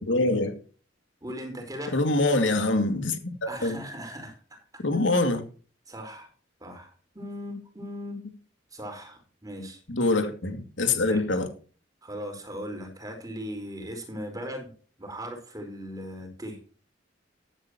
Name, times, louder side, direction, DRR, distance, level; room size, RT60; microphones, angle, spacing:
voice 1, 0.0-0.5 1.9-3.8 4.8-5.4 9.9-11.5, left 2 dB, 80° left, 2.5 m, -24 dB
voice 2, 1.2-2.0 3.5-4.4 5.9-6.3 6.6-8.2 8.7-9.8 11.1-11.3 12.0-14.7 15.0-16.6, equal, 20° right, 4.7 m, -38 dB
15.0 x 12.0 x 3.1 m
head